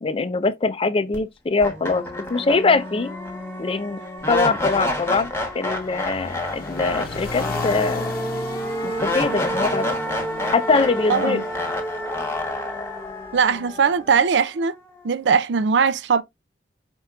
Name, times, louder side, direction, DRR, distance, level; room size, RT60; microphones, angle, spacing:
voice 1, 0.0-3.1 3.6-4.0 4.3-8.1 8.8-9.9 10.5-11.4, left 3 dB, 30° left, 0.4 m, -23 dB
sound 1, 1.1-1.2 1.6-14.7, left 1 dB, 15° left, 1.1 m, -28 dB
sound 2, 4.2-12.5, left 2 dB, 60° left, 0.8 m, -37 dB
voice 2, 11.1-11.4 13.3-14.7 15.0-16.2, right 6 dB, 90° right, 0.5 m, -20 dB
4.4 x 4.4 x 2.3 m
head